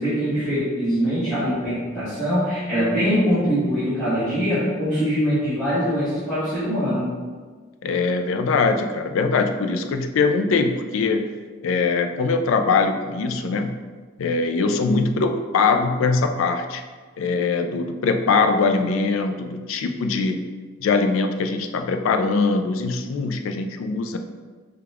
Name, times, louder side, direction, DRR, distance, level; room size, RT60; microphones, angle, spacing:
voice 1, 0.0-7.0, equal, 5° left, -16 dB, 1.4 m, -23 dB
voice 2, 7.8-11.3 11.6-13.8 14.2-16.8 17.2-20.4 20.8-24.2, left 4 dB, 85° left, 7 dB, 0.4 m, -22 dB
5.1 x 2.3 x 3.4 m, 1.4 s
head